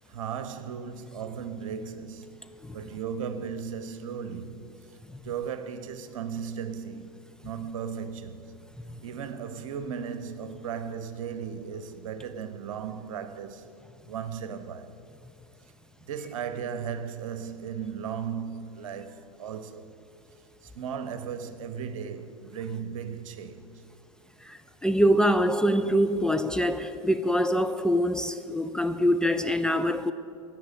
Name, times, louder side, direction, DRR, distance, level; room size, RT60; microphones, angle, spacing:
voice 1, 0.1-2.4 2.7-4.7 5.2-7.1 7.4-8.5 9.0-13.7 14.0-14.9 16.1-19.9 20.6-23.8, right 7 dB, 65° right, 1.1 m, -36 dB
voice 2, 24.4-30.1, equal, 5° left, 0.4 m, -24 dB
16.0 x 6.1 x 9.5 m
hypercardioid pair, 90°, 18 cm